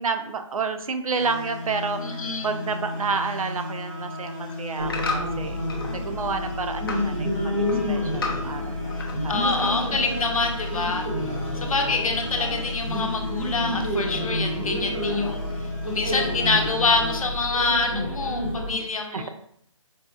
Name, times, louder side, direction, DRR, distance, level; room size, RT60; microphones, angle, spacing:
voice 1, 0.0-5.6 5.9-9.7 11.4-11.7 14.5-15.0 19.1-19.3, right 4 dB, 90° right, 7 dB, 0.5 m, -30 dB
sound 1, 1.1-17.3, left 2 dB, 5° left, 0.9 m, -36 dB
voice 2, 2.0-2.5 9.3-19.3, left 3 dB, 85° left, 4 dB, 0.7 m, -26 dB
sound 2, 4.1-6.0 6.3-7.1 7.4-9.2 9.4-10.0 10.5-10.6, left 3 dB, 45° left, 0.5 m, -33 dB
sound 3, 4.8-18.7, left 1 dB, 20° right, 0.7 m, -29 dB
4.1 x 2.3 x 2.3 m, 0.68 s
hypercardioid pair, 180°, 17 cm